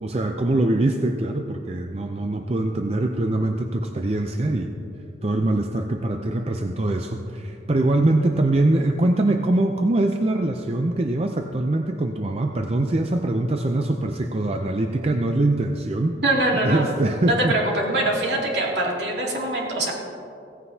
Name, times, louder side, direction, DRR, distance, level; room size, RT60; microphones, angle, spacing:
voice 1, 0.0-4.7 5.2-16.2 16.6-17.6, right 2 dB, 35° right, 4 dB, 0.5 m, -23 dB
voice 2, 16.2-16.9 17.3-19.9, right 1 dB, 65° right, -2 dB, 2.5 m, -23 dB
16.5 x 15.0 x 2.7 m, 2.6 s
head